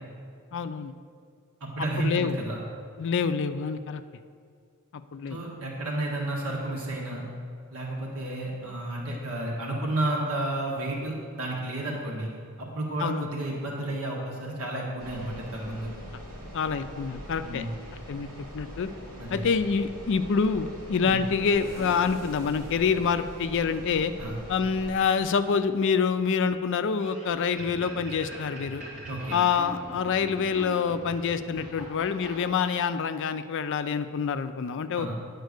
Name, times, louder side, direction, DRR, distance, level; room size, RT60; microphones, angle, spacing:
voice 1, 0.5-0.9 2.0-2.4 3.0-4.0 5.1-5.4 13.0-13.3 16.5-17.7 18.1-18.3 18.5-18.9 19.3-24.1 24.5-28.8 29.3-35.1, left 6 dB, 55° left, 10 dB, 0.4 m, -26 dB
voice 2, 1.6-2.6 5.3-7.2 7.7-12.3 12.6-15.9 17.4-17.8 19.2-19.4 21.1-21.2 24.2-24.4 29.1-29.4 34.9-35.2, right 1 dB, 70° right, -2 dB, 1.4 m, -31 dB
sound 1, 15.0-25.0, equal, 90° right, 2.5 m, -43 dB
sound 2, 21.2-26.2, equal, 10° left, 1.8 m, -49 dB
sound 3, 27.0-32.7, right 1 dB, 40° right, 2.4 m, -43 dB
9.4 x 4.4 x 6.5 m, 2.2 s
head